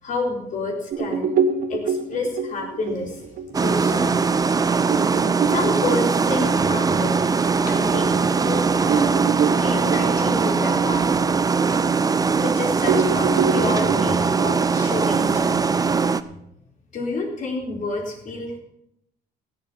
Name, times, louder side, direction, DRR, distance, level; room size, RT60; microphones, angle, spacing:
voice 1, 0.0-1.3 1.7-3.3 3.5-4.3 4.8-5.0 5.5-8.2 8.5-11.2 12.3-15.7 16.9-18.6, left 3 dB, 50° left, 1 dB, 4.2 m, -29 dB
sound 1, 0.9-8.0 8.4-8.5 8.9-12.5 12.8-15.9, right 6 dB, 55° right, 1.3 m, -27 dB
sound 2, 3.5-16.2, right 5 dB, 20° right, 0.7 m, -21 dB
15.5 x 7.5 x 7.5 m, 0.77 s
cardioid pair, 110°, 17 cm